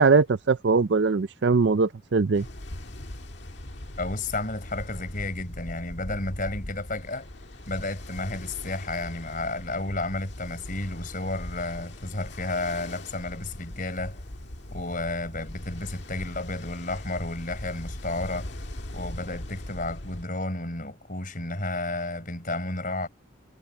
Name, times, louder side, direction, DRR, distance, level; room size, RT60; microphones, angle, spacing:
voice 1, 0.0-2.5, right 4 dB, 60° right, 0.5 m, -21 dB
Ocean, 2.3-20.2, left 1 dB, 60° left, 1.8 m, -40 dB
voice 2, 4.0-7.3 7.7-14.2 14.7-18.5 18.9-23.1, left 2 dB, 45° left, 4.4 m, -32 dB
head